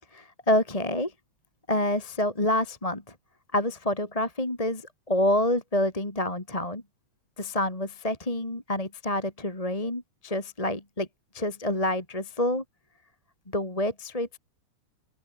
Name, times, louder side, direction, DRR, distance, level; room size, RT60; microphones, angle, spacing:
voice 1, 0.1-1.1 1.7-3.1 3.5-6.8 7.4-11.1 11.3-12.6 13.5-14.4, left 1 dB, 10° left, 2.6 m, -27 dB
open air
omnidirectional pair, 3.7 m